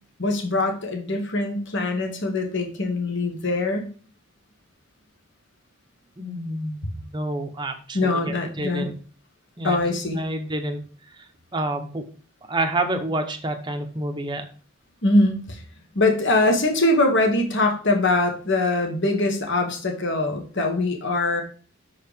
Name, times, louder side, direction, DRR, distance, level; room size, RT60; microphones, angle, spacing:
voice 1, 0.2-3.9 7.9-8.9 9.6-10.2 15.0-15.6 15.9-21.4, left 2 dB, 55° left, 3 dB, 1.5 m, -22 dB
voice 2, 6.2-8.9 9.6-9.8 10.1-10.8 11.5-12.0 12.5-14.5, right 1 dB, 20° right, 5 dB, 0.9 m, -28 dB
6.2 x 4.8 x 5.1 m, 0.40 s
head